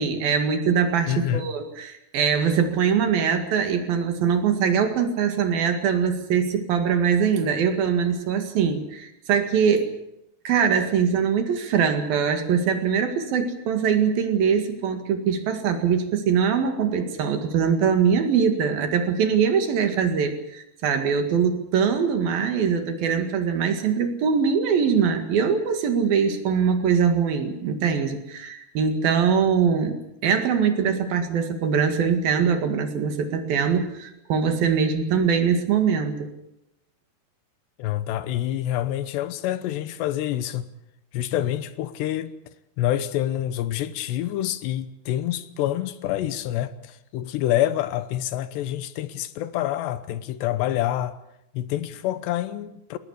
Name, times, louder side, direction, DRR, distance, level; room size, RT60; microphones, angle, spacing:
voice 1, 0.0-9.9 10.5-36.3, right 6 dB, 65° right, 3.6 m, -22 dB
voice 2, 1.1-1.5 37.8-40.7 41.1-42.3 42.8-51.2 51.5-53.0, left 13 dB, 85° left, 3.2 m, -27 dB
21.0 x 19.0 x 8.3 m
omnidirectional pair, 4.9 m